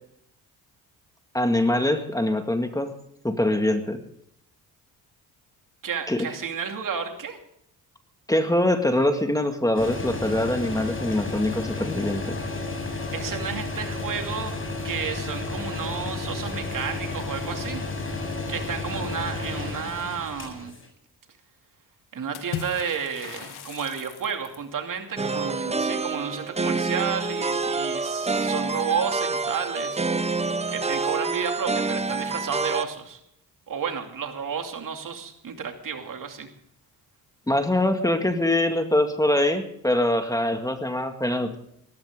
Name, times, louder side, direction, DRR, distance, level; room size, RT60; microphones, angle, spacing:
voice 1, 1.3-2.9 3.2-4.0 6.1-6.3 8.3-12.4 37.5-41.6, left 1 dB, 10° left, 6 dB, 2.0 m, -23 dB
voice 2, 5.8-7.4 13.1-14.6 14.8-17.8 18.5-20.8 22.1-33.2 33.7-36.5, right 6 dB, 55° right, 4 dB, 2.7 m, -32 dB
sound 1, 9.7-20.9, left 3 dB, 30° left, 7.4 m, -32 dB
Water / Splash splatter, 22.3-24.7, left 8 dB, 80° left, 2.4 m, -37 dB
sound 2, 25.2-32.8, right 3 dB, 15° right, 0.8 m, -27 dB
19.0 x 14.5 x 3.8 m, 0.73 s
cardioid pair, 80°, 38 cm